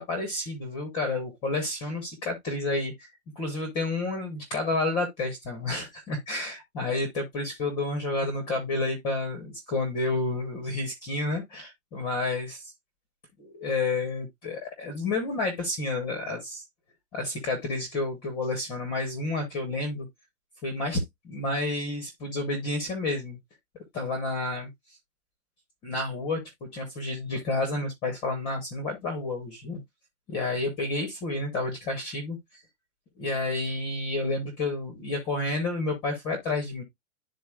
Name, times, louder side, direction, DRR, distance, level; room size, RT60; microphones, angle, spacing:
voice 1, 0.0-3.1 3.4-12.7 13.4-16.6 17.1-20.1 20.6-23.4 23.9-24.7 25.8-26.4 26.7-29.8 30.3-32.6 33.2-36.8, left 2 dB, 10° left, 0.8 m, -30 dB
11.0 x 4.0 x 2.2 m
supercardioid pair, 175°, 41 cm